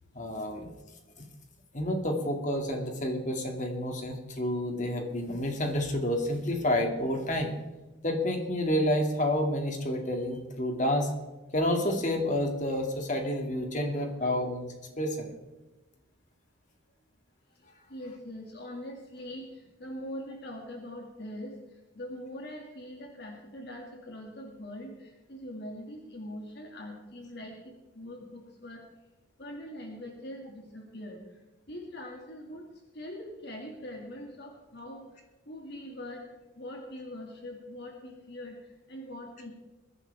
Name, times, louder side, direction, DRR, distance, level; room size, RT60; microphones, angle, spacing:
voice 1, 0.1-0.7 1.7-7.6 8.0-11.1 11.5-14.7 15.0-15.3, left 1 dB, 40° left, 3 dB, 2.5 m, -29 dB
voice 2, 14.0-14.3 17.9-21.6 21.9-28.9 29.4-31.2 31.7-32.7 32.9-35.1 35.5-36.2 36.6-39.5, left 1 dB, 55° left, 0 dB, 2.3 m, -42 dB
22.0 x 11.0 x 3.6 m, 1.1 s
head